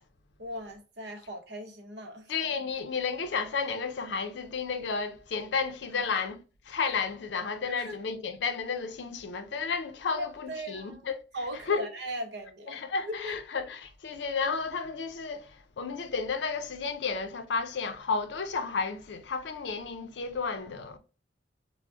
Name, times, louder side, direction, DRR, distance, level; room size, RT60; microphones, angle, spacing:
voice 1, 0.4-2.3 5.9-6.0 7.6-8.0 10.1-11.0 11.3-13.3, equal, 65° right, 0.7 m, -39 dB
voice 2, 2.3-6.4 6.7-11.1 11.7-11.9 12.7-21.0, left 5 dB, 70° left, 0.4 m, -32 dB
3.4 x 2.0 x 2.4 m
head